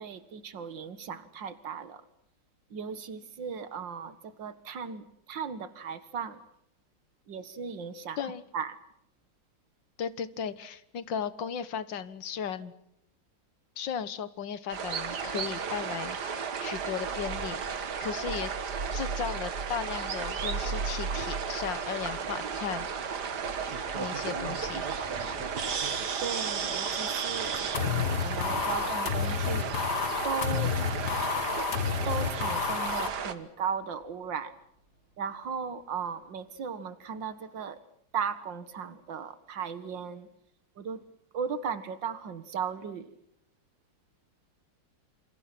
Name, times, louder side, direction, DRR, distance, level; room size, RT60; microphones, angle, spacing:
voice 1, 0.0-2.0 2.7-6.4 7.3-8.8 26.2-29.7 30.2-30.7 32.1-34.5 35.2-37.8 38.1-40.3 40.8-41.0 41.3-43.1, right 6 dB, 90° right, 14 dB, 2.3 m, -36 dB
voice 2, 10.0-12.7 13.8-18.5 18.9-23.2 23.9-24.9, left 8 dB, 85° left, 15 dB, 2.0 m, -36 dB
sound 1, 14.7-33.3, right 6 dB, 65° right, 2.1 m, -33 dB
Thunder, 21.9-36.4, equal, 40° left, 6.0 m, -52 dB
sound 2, 27.7-33.1, left 7 dB, 65° left, 1.9 m, -30 dB
27.5 x 26.0 x 6.0 m, 0.76 s
omnidirectional pair, 1.9 m